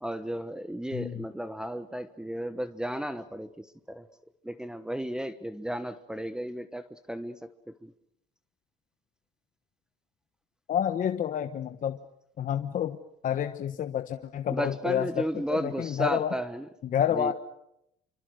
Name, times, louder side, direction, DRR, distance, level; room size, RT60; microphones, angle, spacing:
voice 1, 0.0-4.1 4.4-7.5 7.8-7.9 14.5-16.7 17.1-17.3, equal, 5° right, 11 dB, 1.2 m, -34 dB
voice 2, 0.9-1.2 10.7-12.0 12.4-13.0 13.2-16.3 16.8-17.3, left 9 dB, 50° left, 8 dB, 1.2 m, -29 dB
27.5 x 25.0 x 6.6 m, 0.79 s
cardioid pair, 110°, 17 cm